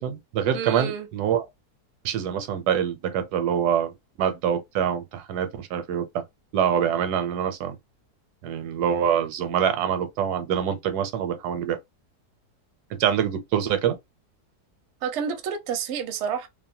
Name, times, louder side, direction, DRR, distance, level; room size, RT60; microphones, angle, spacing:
voice 1, 0.0-1.5 2.0-6.2 6.5-7.8 8.4-11.8 13.0-14.0, right 8 dB, 80° right, 1.1 m, -25 dB
voice 2, 0.5-1.1 15.0-16.5, right 7 dB, 65° right, 0.7 m, -29 dB
2.8 x 2.1 x 2.6 m
omnidirectional pair, 1.7 m